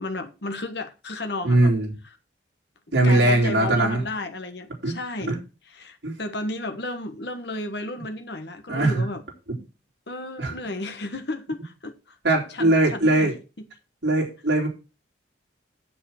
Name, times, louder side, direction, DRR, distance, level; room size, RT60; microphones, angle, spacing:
voice 1, 0.0-1.7 2.9-5.4 5.7-9.2 10.1-12.2 12.5-13.3, left 2 dB, 60° left, 1.4 m, -33 dB
voice 2, 1.4-1.9 2.9-4.0 4.8-4.9 5.3-5.4 6.0-6.2 8.7-9.0 9.5-9.6 10.4-10.5 12.2-13.3 14.0-14.7, right 2 dB, 60° right, 4.0 m, -20 dB
7.7 x 7.2 x 6.5 m
head